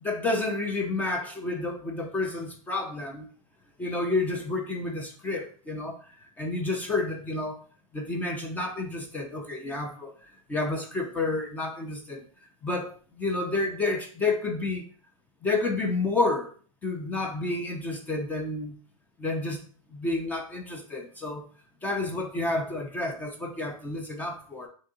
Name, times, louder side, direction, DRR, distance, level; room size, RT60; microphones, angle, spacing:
voice 1, 0.0-3.3 3.8-6.0 6.4-7.6 7.9-12.2 12.6-14.8 15.4-16.5 16.8-18.8 19.2-19.6 19.9-21.4 21.8-24.7, left 2 dB, 10° left, 2 dB, 0.3 m, -30 dB
3.4 x 2.8 x 3.7 m, 0.44 s
supercardioid pair, 150°, 18 cm